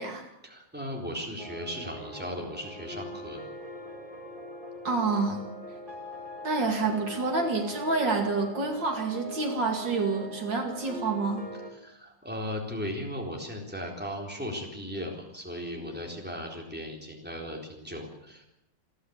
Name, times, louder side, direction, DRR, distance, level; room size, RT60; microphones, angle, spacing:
voice 1, 0.4-3.4 11.7-18.5, equal, 5° right, 0 dB, 4.0 m, -37 dB
sound 1, 1.4-11.7, right 1 dB, 25° right, 2.9 m, -41 dB
voice 2, 4.8-5.4 6.4-11.4, right 3 dB, 70° right, 4 dB, 3.1 m, -28 dB
28.0 x 11.5 x 8.1 m, 0.83 s
omnidirectional pair, 2.0 m